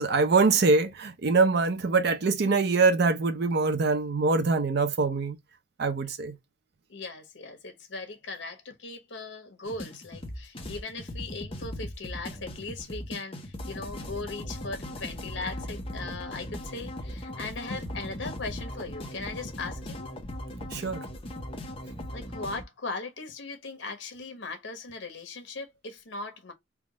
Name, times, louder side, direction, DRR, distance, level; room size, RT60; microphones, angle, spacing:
voice 1, 0.0-5.4 5.8-6.3 20.6-21.0, right 4 dB, 60° right, 0.5 m, -24 dB
voice 2, 6.9-20.1 22.1-26.5, left 3 dB, 75° left, 1.1 m, -38 dB
sound 1, 9.6-22.6, left 1 dB, 30° left, 0.8 m, -38 dB
3.4 x 2.4 x 4.0 m
head